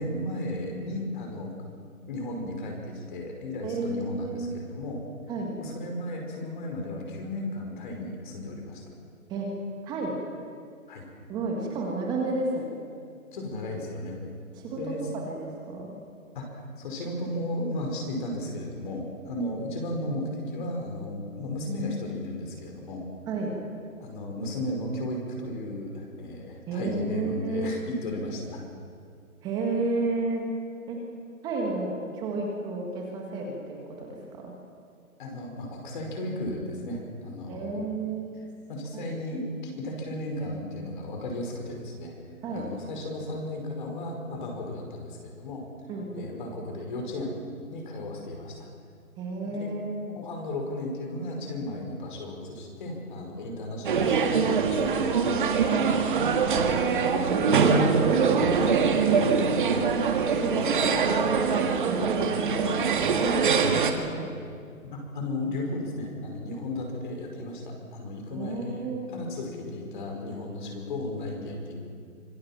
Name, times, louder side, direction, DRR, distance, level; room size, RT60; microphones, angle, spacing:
voice 1, 0.0-1.5 2.1-5.0 5.6-8.8 10.9-11.1 13.3-14.2 14.8-15.0 16.3-23.0 24.0-28.6 35.2-37.8 38.3-38.4 38.7-42.1 42.5-45.6 46.2-47.4 47.7-48.7 49.5-49.7 50.1-56.1 64.9-68.9 69.1-71.8, left 1 dB, 35° left, 1 dB, 5.4 m, -35 dB
voice 2, 3.6-4.4 5.3-5.5 9.3-9.5 9.8-10.1 11.3-12.8 14.6-15.9 23.3-23.5 26.7-27.8 29.4-30.5 30.9-31.0 31.4-34.5 37.5-38.5 38.9-39.0 42.4-42.7 45.9-46.3 49.2-50.1 57.3-59.4 59.7-59.8 60.2-61.4 61.8-64.3 68.3-69.1, right 3 dB, 10° right, 0 dB, 1.8 m, -31 dB
sound 1, 53.8-63.9, right 5 dB, 35° right, 1.9 m, -23 dB
25.5 x 21.5 x 7.5 m, 2.2 s
hypercardioid pair, 160°, 43 cm